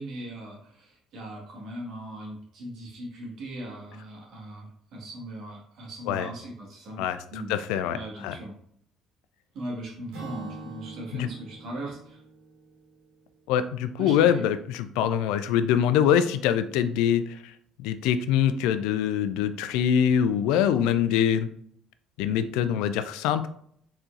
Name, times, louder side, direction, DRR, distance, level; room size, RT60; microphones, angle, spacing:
voice 1, 0.0-7.0 7.3-7.5 7.9-8.5 9.5-12.2 14.0-14.4, right 1 dB, 60° right, -2 dB, 1.7 m, -39 dB
voice 2, 7.0-8.3 11.1-11.3 13.5-17.5 17.8-21.5 22.2-23.5, left 9 dB, 75° left, 11 dB, 0.3 m, -24 dB
Acoustic guitar / Strum, 10.1-13.7, right 3 dB, 75° right, 1.3 m, -44 dB
4.4 x 4.3 x 2.5 m, 0.66 s
hypercardioid pair, 55°, 0 cm